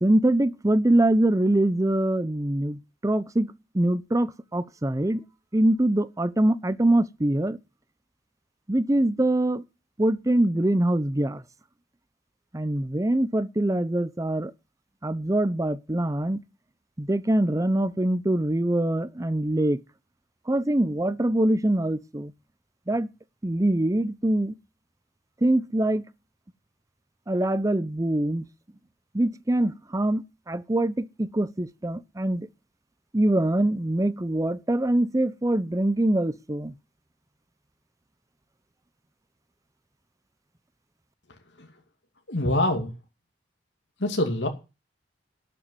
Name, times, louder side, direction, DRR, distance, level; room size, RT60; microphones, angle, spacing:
voice 1, 0.0-5.2 5.5-7.6 8.7-9.6 10.0-11.4 12.5-14.5 15.0-16.4 17.0-19.8 20.5-22.3 22.9-23.1 23.4-24.5 25.4-26.0 27.3-28.5 29.1-32.5 33.1-36.7, right 1 dB, 20° right, 0.7 m, -24 dB
voice 2, 42.3-42.9 44.0-44.5, left 1 dB, 85° left, 2.5 m, -25 dB
12.0 x 7.0 x 9.3 m
head